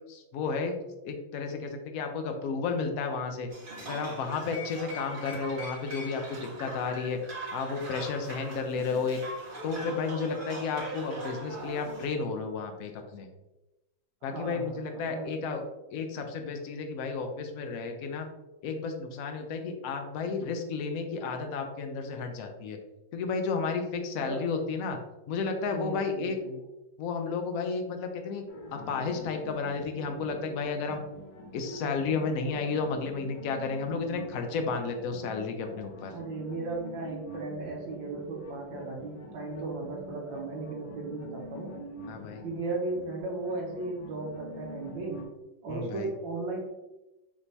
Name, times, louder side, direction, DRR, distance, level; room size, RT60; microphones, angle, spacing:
voice 1, 0.1-0.8 1.0-3.5 3.8-7.2 7.5-9.2 9.6-13.3 14.2-15.6 15.9-18.3 18.6-22.8 23.1-25.0 25.3-26.4 27.0-28.4 28.7-31.0 31.5-36.1 42.1-42.4 45.7-46.1, left 4 dB, 75° left, 4 dB, 0.8 m, -32 dB
sound 1, 3.5-12.1, right 1 dB, 50° right, 0.6 m, -41 dB
voice 2, 14.2-15.3 24.2-24.4 25.7-26.6 32.8-33.0 36.1-41.8 42.4-45.2 45.6-46.6, right 3 dB, 75° right, -1 dB, 1.5 m, -36 dB
sound 2, 28.5-45.2, equal, 90° left, 1.7 m, -45 dB
4.9 x 3.3 x 2.7 m, 1.0 s
omnidirectional pair, 2.1 m